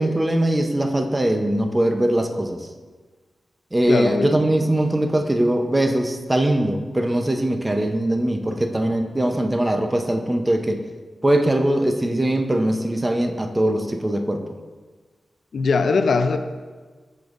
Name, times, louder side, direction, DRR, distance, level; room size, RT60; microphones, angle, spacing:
voice 1, 0.0-2.7 3.7-10.8 11.2-14.4, right 1 dB, 25° right, 4 dB, 0.8 m, -21 dB
voice 2, 3.9-4.5 15.5-16.4, left 4 dB, 80° left, 9 dB, 0.5 m, -20 dB
14.5 x 5.3 x 2.6 m, 1.4 s
cardioid pair, 45°, 0 cm